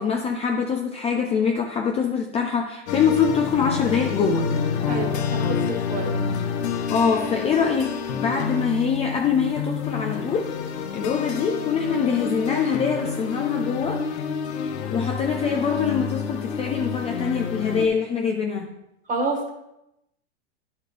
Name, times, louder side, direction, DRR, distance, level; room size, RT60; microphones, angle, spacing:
voice 1, 0.0-4.5 6.9-10.5 10.9-14.0 14.9-18.7, left 6 dB, 20° left, 3 dB, 0.5 m, -24 dB
sound 1, 2.9-17.9, left 6 dB, 70° left, 1.0 m, -28 dB
voice 2, 4.9-6.2 19.1-19.5, right 3 dB, 25° right, 3 dB, 1.6 m, -28 dB
9.7 x 5.6 x 3.3 m, 0.87 s
hypercardioid pair, 125°, 34 cm